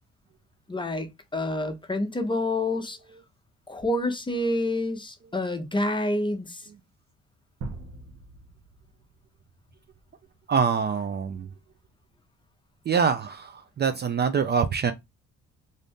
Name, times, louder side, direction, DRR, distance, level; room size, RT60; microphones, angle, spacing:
voice 1, 0.7-1.1 1.3-3.0 3.7-6.7, left 1 dB, 15° left, 0.6 m, -28 dB
sound 1, 7.6-9.6, right 3 dB, 60° right, 0.8 m, -41 dB
voice 2, 10.5-11.5 12.9-14.9, right 6 dB, 35° right, 0.4 m, -25 dB
2.6 x 2.5 x 3.4 m
cardioid pair, 90°, 30 cm